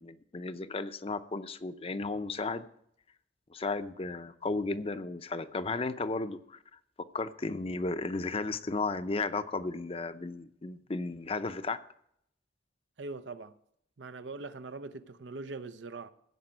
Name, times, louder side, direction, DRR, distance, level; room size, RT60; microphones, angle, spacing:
voice 1, 0.0-2.7 3.5-6.6 7.1-11.8, left 3 dB, 35° left, 0.6 m, -34 dB
voice 2, 13.0-13.6 14.0-16.1, right 3 dB, 90° right, 0.8 m, -42 dB
15.5 x 5.2 x 8.9 m
head